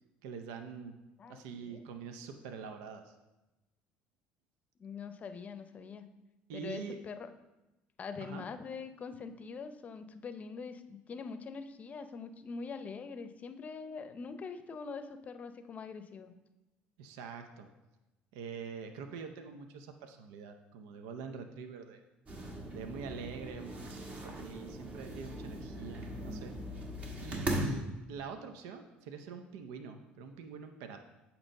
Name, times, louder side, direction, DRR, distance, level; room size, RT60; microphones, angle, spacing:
voice 1, 0.2-1.0 1.3-3.1 6.5-7.0 8.2-8.4 17.0-17.7 18.3-22.0 22.7-26.5 27.2-31.0, right 6 dB, 85° right, 6 dB, 0.6 m, -45 dB
voice 2, 1.2-1.8 4.8-6.1 6.5-7.3 8.0-16.3, left 5 dB, 40° left, 10 dB, 0.6 m, -43 dB
sound 1, 22.3-27.7, right 1 dB, 35° right, 1.4 m, -39 dB
8.7 x 3.0 x 6.4 m, 1.0 s
supercardioid pair, 90°, 4 cm